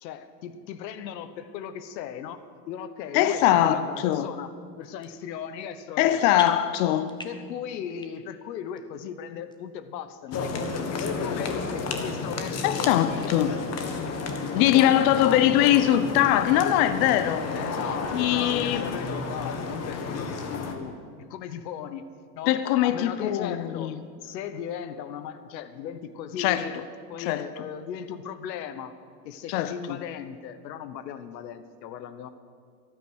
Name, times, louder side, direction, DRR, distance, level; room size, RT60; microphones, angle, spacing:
voice 1, 0.0-2.4 2.7-4.5 4.8-6.5 7.2-13.3 14.4-15.9 17.5-20.9 21.3-22.1 22.4-26.7 27.1-28.9 29.2-32.3, left 8 dB, 90° left, 12 dB, 1.2 m, -37 dB
voice 2, 3.1-4.3 6.0-7.1 11.5-11.6 12.6-13.6 14.5-17.5 18.1-18.9 22.5-24.0 26.4-26.7 27.2-27.5 29.5-30.0, left 12 dB, 60° left, 12 dB, 0.9 m, -22 dB
sound 1, 4.0-4.2 4.8-5.3 5.6-6.1 6.3-7.5 7.9-8.4 8.8-8.9 9.5-9.6 10.3-10.4 11.1-11.2 11.6-11.7 12.1-12.8 13.2-13.3 13.8-13.9 14.1-14.8 15.2-15.3 15.6-15.7 16.1-16.6 17.0-17.1, left 3 dB, 10° left, 1.1 m, -44 dB
sound 2, 10.3-20.7, left 4 dB, 30° left, 1.7 m, -32 dB
23.5 x 9.4 x 6.3 m, 2.1 s
supercardioid pair, 130°, 49 cm